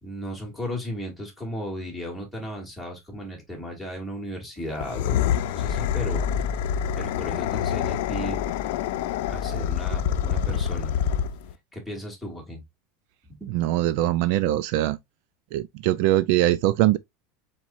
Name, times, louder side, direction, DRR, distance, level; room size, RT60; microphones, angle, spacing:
voice 1, 0.0-6.4 7.0-8.4 9.3-10.9 11.7-12.6 13.3-13.7, equal, 5° right, 2.5 m, -35 dB
sound 1, 4.7-11.5, left 9 dB, 70° left, 0.6 m, -26 dB
voice 2, 13.5-15.0 15.5-17.0, right 14 dB, 60° right, 0.4 m, -22 dB
4.6 x 4.3 x 2.5 m
supercardioid pair, 145°, 0 cm